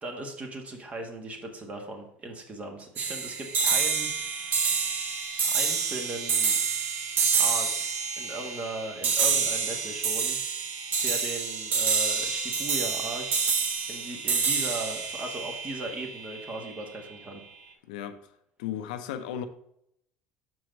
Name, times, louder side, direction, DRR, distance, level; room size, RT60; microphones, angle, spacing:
voice 1, 0.0-4.1 5.5-6.6 7.4-10.4 11.0-13.5 13.9-17.4, right 2 dB, 30° right, 1.6 m, -38 dB
sound 1, 3.0-16.4, right 5 dB, 45° right, 1.2 m, -28 dB
voice 2, 17.9-18.2 18.6-19.5, left 10 dB, 85° left, 0.6 m, -34 dB
6.1 x 4.7 x 5.2 m
supercardioid pair, 100°, 4 cm